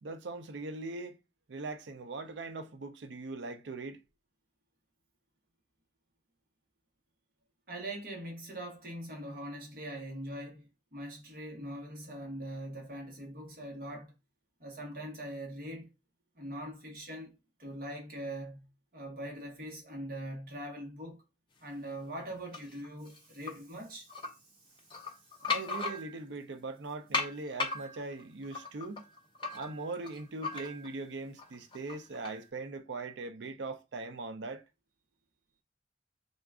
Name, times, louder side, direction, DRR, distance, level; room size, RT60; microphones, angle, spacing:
voice 1, 0.0-1.2 1.5-4.0 25.5-29.0 29.5-34.6, right 3 dB, 80° right, 0.5 m, -40 dB
voice 2, 7.7-14.1 14.6-15.9 16.4-17.3 17.6-18.6 18.9-21.2 21.6-24.1, right 1 dB, 50° right, 1.2 m, -42 dB
sound 1, 22.5-23.5 24.1-24.3 24.8-26.4 27.1-31.0 31.4-32.4, left 4 dB, 25° left, 0.6 m, -37 dB
3.8 x 2.4 x 3.5 m
head